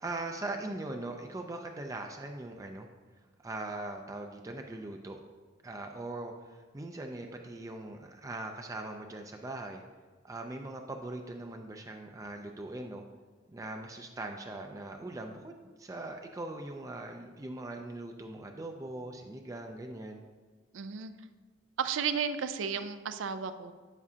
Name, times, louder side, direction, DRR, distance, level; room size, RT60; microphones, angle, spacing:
voice 1, 0.0-2.9 3.4-5.2 5.6-9.8 10.2-13.0 13.5-15.5 15.8-20.2, right 2 dB, 20° right, 3 dB, 0.4 m, -40 dB
voice 2, 20.7-21.1 21.8-23.7, right 7 dB, 85° right, 11 dB, 0.4 m, -33 dB
8.4 x 7.2 x 2.7 m, 1.5 s
head